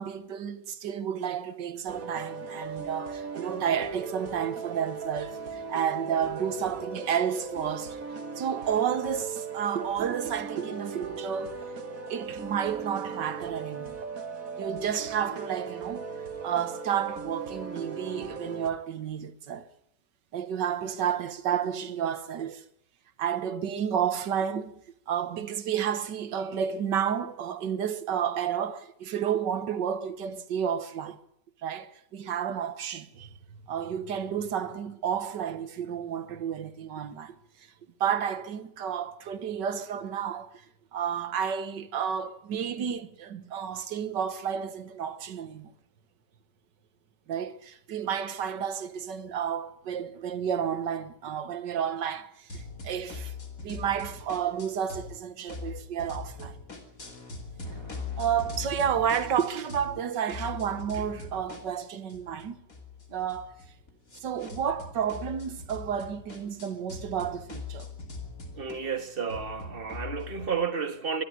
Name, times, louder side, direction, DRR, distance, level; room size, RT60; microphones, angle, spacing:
voice 1, 0.0-8.0 8.4-11.6 12.1-14.0 14.6-16.1 16.4-19.7 20.3-22.6 23.2-24.8 25.1-31.2 31.6-33.3 33.7-37.7 38.0-40.6 40.9-45.7 47.3-53.3 53.6-56.6 58.2-62.6 63.1-63.5 64.2-67.9, right 8 dB, 85° right, 1.9 m, -31 dB
sound 1, 1.9-18.7, right 5 dB, 55° right, 2.0 m, -38 dB
sound 2, 52.5-55.2 55.5-60.0 60.3-70.5, left 4 dB, 50° left, 3.4 m, -41 dB
voice 2, 68.5-71.2, right 6 dB, 35° right, 1.6 m, -31 dB
23.0 x 12.5 x 9.3 m
omnidirectional pair, 1.9 m